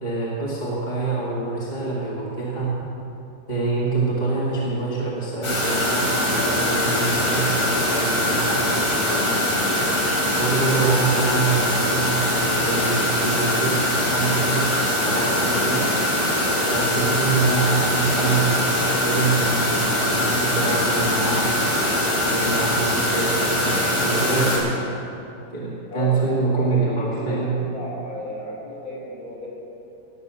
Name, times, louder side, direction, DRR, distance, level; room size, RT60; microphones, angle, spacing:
voice 1, 0.0-2.8 3.5-9.4 10.3-15.8 16.7-21.8 22.3-24.7 25.5-27.7, right 3 dB, 25° left, -6 dB, 2.1 m, -25 dB
sound 1, 5.4-24.6, left 1 dB, 70° left, 4.4 m, -22 dB
voice 2, 16.3-16.9 25.9-29.5, left 1 dB, 50° left, -5 dB, 4.5 m, -33 dB
19.0 x 6.9 x 6.9 m, 2.8 s
omnidirectional pair, 1.9 m